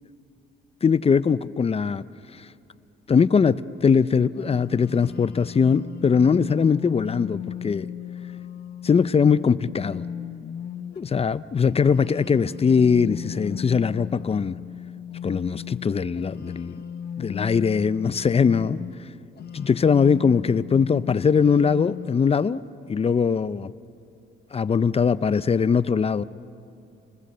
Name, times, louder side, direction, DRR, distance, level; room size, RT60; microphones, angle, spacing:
voice 1, 0.8-2.0 3.1-7.9 8.8-10.0 11.0-14.6 15.2-16.8 17.2-18.8 19.5-22.6 22.9-23.7 24.5-26.2, left 6 dB, 30° left, 0.5 m, -21 dB
sound 1, 4.3-11.0 11.6-19.0 19.4-22.1, left 8 dB, 55° left, 0.9 m, -36 dB
29.0 x 20.0 x 6.8 m
cardioid pair, 90°, 20 cm